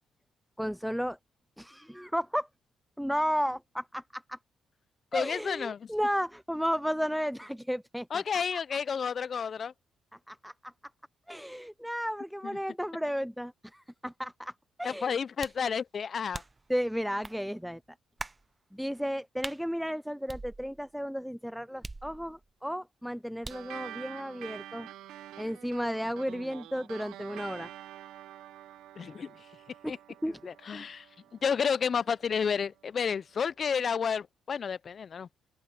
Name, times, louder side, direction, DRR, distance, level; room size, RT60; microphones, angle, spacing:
voice 1, 0.6-1.2 1.6-2.5 3.0-4.4 5.1-8.2 8.5-8.6 10.3-10.7 11.3-14.5 14.8-15.1 16.7-17.8 18.7-24.9 25.4-27.7 29.8-29.9 30.2-30.4 30.7-30.9, equal, ahead, 0.4 m, -33 dB
voice 2, 5.1-5.9 8.1-9.7 12.4-12.6 14.8-16.4 29.0-29.5 29.9-30.0 30.4-31.1 31.3-35.3, left 6 dB, 50° left, 0.5 m, -31 dB
sound 1, 15.4-15.7 16.3-16.7 17.2-17.4 18.2-18.5 19.4-19.6 20.3-20.9 21.8-22.5 23.4-23.8, right 2 dB, 20° right, 0.9 m, -42 dB
sound 2, 23.5-32.3, right 13 dB, 85° right, 0.8 m, -47 dB
open air
cardioid pair, 90°, 0 cm